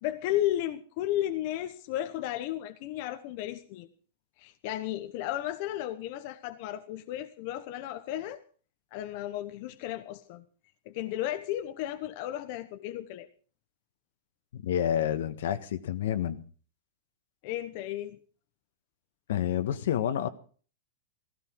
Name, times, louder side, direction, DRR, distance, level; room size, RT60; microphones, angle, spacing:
voice 1, 0.0-3.9 4.4-8.4 8.9-10.4 10.9-13.3 17.4-18.2, left 13 dB, 45° left, 1.1 m, -34 dB
voice 2, 14.5-16.4 19.3-20.3, left 10 dB, 75° left, 1.6 m, -29 dB
16.5 x 16.0 x 4.7 m
supercardioid pair, 160°, 0 cm